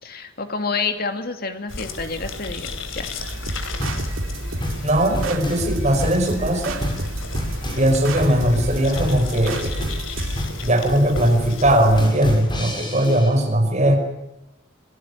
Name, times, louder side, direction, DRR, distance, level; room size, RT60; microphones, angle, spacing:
voice 1, 0.0-2.7 2.9-3.1, left 4 dB, 50° left, 7 dB, 2.7 m, -28 dB
sound 1, 1.7-12.0, left 3 dB, 90° left, 3.5 m, -34 dB
sound 2, 3.2-10.4, right 1 dB, 90° right, 3.2 m, -30 dB
sound 3, 3.8-13.3, equal, 25° left, 7.1 m, -29 dB
voice 2, 4.8-6.8 7.8-9.8 10.6-14.0, right 1 dB, 35° right, 4 dB, 5.5 m, -19 dB
25.0 x 18.0 x 10.0 m, 0.91 s
head